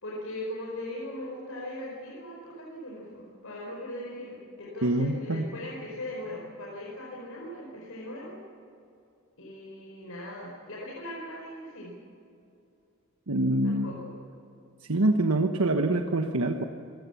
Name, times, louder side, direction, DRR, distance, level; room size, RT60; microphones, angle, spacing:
voice 1, 0.0-8.4 9.4-11.9 13.6-14.1, left 1 dB, 75° left, -3 dB, 4.8 m, -39 dB
voice 2, 4.8-5.5 13.3-13.9 14.8-16.6, right 2 dB, 80° right, 4 dB, 1.2 m, -25 dB
27.0 x 18.5 x 7.2 m, 2.6 s
head